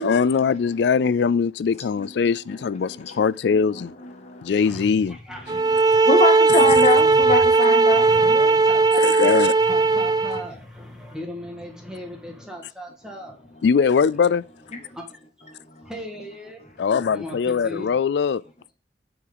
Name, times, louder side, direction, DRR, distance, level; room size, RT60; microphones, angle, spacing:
voice 1, 0.0-3.9 4.4-5.2 9.0-9.5 13.6-14.4 16.8-18.4, left 6 dB, 70° left, 0.3 m, -21 dB
voice 2, 4.5-6.0 6.7-7.3 7.9-9.3 9.6-13.6 14.8-15.0 15.4-15.5 15.8-17.9, left 1 dB, 5° right, 1.7 m, -38 dB
sound 1, 5.5-10.5, right 3 dB, 20° right, 0.4 m, -17 dB
voice 3, 6.1-8.0, left 2 dB, 40° left, 1.1 m, -22 dB
9.1 x 4.7 x 3.9 m
head